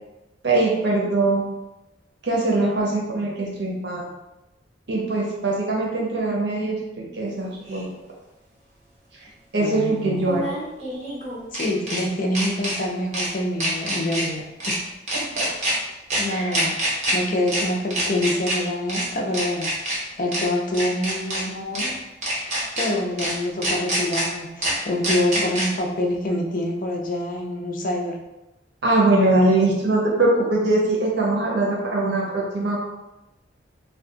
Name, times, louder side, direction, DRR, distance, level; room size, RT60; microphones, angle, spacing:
voice 1, 0.4-1.5 2.2-4.1 4.9-7.8 9.5-10.4 15.4-15.5 16.3-16.5 28.8-32.8, right 2 dB, 65° right, -3 dB, 0.8 m, -22 dB
sound 1, 7.7-7.8 10.2-12.0 12.3-12.8 13.1-13.3 13.6-14.2 14.6-14.8 15.1-15.7 16.1-16.2 16.5-17.1 17.5-17.6 17.9-18.6 18.9-19.0 19.3-20.0 20.3-20.4 20.7-21.4 21.7-21.9 22.2-22.9 23.2-23.3 23.6-24.2 24.6-24.7 25.0-25.7, right 1 dB, 40° right, 0.9 m, -25 dB
voice 2, 9.6-10.3 11.5-14.8 16.2-16.8 17.1-21.9 22.3-28.2, left 1 dB, 50° left, 1 dB, 0.5 m, -26 dB
2.4 x 2.3 x 3.8 m, 0.98 s
head